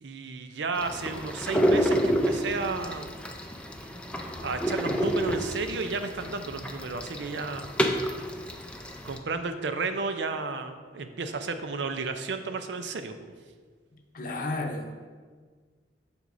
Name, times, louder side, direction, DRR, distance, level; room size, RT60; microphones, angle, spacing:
voice 1, 0.0-3.1 4.4-7.7 9.0-13.2, right 4 dB, 70° right, 8 dB, 0.5 m, -33 dB
sound 1, 0.8-9.2, equal, 5° left, 0.5 m, -29 dB
voice 2, 13.9-14.9, left 2 dB, 50° left, 3 dB, 0.7 m, -33 dB
7.9 x 6.8 x 2.6 m, 1.5 s
head